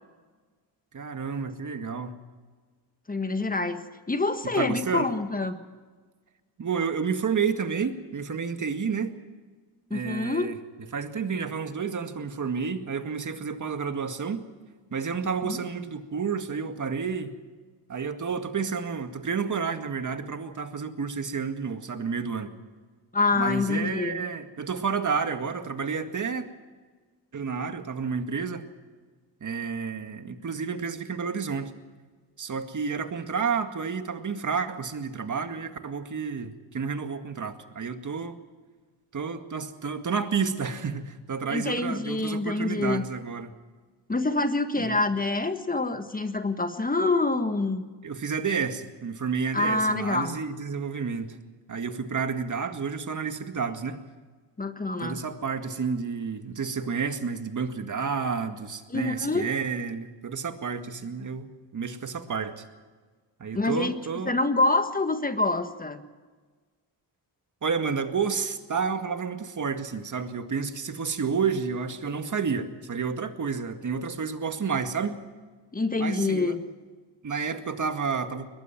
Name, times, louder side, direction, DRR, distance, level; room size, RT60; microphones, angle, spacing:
voice 1, 0.9-2.2 4.4-5.1 6.6-9.2 9.9-10.6 10.9-14.4 14.9-17.4 17.9-22.5 23.3-26.5 27.3-28.6 29.4-31.7 32.4-38.4 39.1-43.5 44.8-45.0 48.0-51.4 51.7-54.0 55.0-61.5 61.7-62.6 63.4-64.4 67.6-75.2 76.0-76.5 77.2-78.5, right 5 dB, 40° right, 7 dB, 2.1 m, -30 dB
voice 2, 3.1-5.6 9.9-10.5 15.4-15.6 23.1-24.2 41.5-43.0 44.1-47.9 49.5-50.3 54.6-55.2 58.9-59.4 63.5-64.0 64.2-66.0 75.7-76.6, left 3 dB, 20° left, 8 dB, 1.5 m, -26 dB
22.5 x 20.5 x 6.0 m, 1.4 s
cardioid pair, 95°, 44 cm